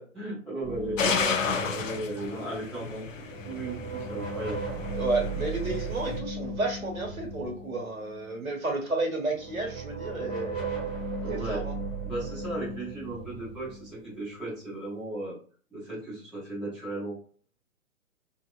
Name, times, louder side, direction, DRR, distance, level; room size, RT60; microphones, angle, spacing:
voice 1, 0.1-3.0 3.4-4.6 11.2-11.6 12.0-15.4 15.7-17.2, right 2 dB, ahead, -14 dB, 0.3 m, -36 dB
sound 1, 0.6-2.8 3.2-8.4 9.3-14.7, right 3 dB, 15° right, 0.8 m, -36 dB
sound 2, 1.0-6.2, left 5 dB, 70° left, 0.5 m, -32 dB
voice 2, 5.0-10.7 11.3-11.7, right 2 dB, 80° right, 1 dB, 1.1 m, -31 dB
2.7 x 2.1 x 2.3 m, 0.42 s
figure-of-eight pair, 125°, 41 cm